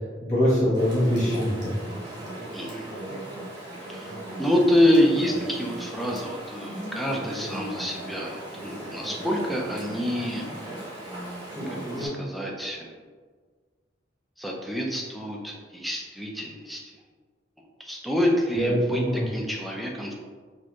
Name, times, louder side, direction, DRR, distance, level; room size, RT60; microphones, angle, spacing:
voice 1, 0.2-1.7 18.5-19.2, equal, 40° left, -8 dB, 1.5 m, -23 dB
Chatter / Stream, 0.7-12.1, right 1 dB, 25° right, 0.9 m, -37 dB
voice 2, 2.5-2.9 3.9-4.1 4.4-10.4 12.0-12.9 14.4-16.8 17.8-20.1, left 1 dB, ahead, -2 dB, 0.4 m, -26 dB
4.1 x 2.5 x 2.9 m, 1.5 s
head